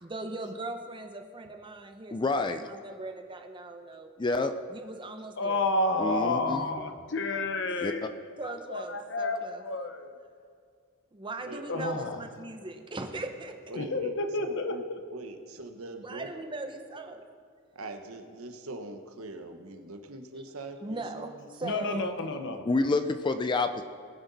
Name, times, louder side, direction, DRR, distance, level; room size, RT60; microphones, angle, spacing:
voice 1, 0.0-4.1 4.7-5.7 8.4-9.6 11.1-13.5 16.0-17.2 20.8-22.1, right 2 dB, 25° right, 5 dB, 0.8 m, -39 dB
voice 2, 2.1-2.6 4.2-4.5 6.0-6.6 7.8-8.1 22.7-23.8, left 3 dB, 20° left, 9 dB, 0.4 m, -28 dB
voice 3, 5.4-8.2 8.7-10.1 11.7-12.2 13.7-15.0 21.6-22.7, left 2 dB, 55° left, 6 dB, 0.9 m, -30 dB
voice 4, 11.4-11.9 13.7-14.9 15.1-16.3 17.7-21.4, right 2 dB, 80° right, 6 dB, 1.0 m, -42 dB
19.5 x 7.8 x 4.1 m, 2.2 s
head